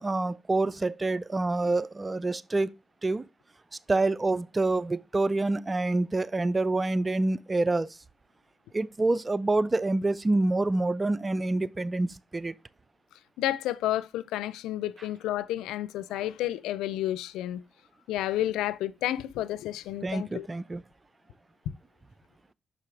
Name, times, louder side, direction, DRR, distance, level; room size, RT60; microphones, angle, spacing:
voice 1, 0.0-2.7 3.0-3.2 3.9-8.0 8.7-12.5 20.0-20.8, right 2 dB, 30° right, 0.5 m, -27 dB
voice 2, 13.4-17.6 18.1-20.5, left 13 dB, 85° left, 0.3 m, -31 dB
6.7 x 4.8 x 3.3 m
hypercardioid pair, 40°, 0 cm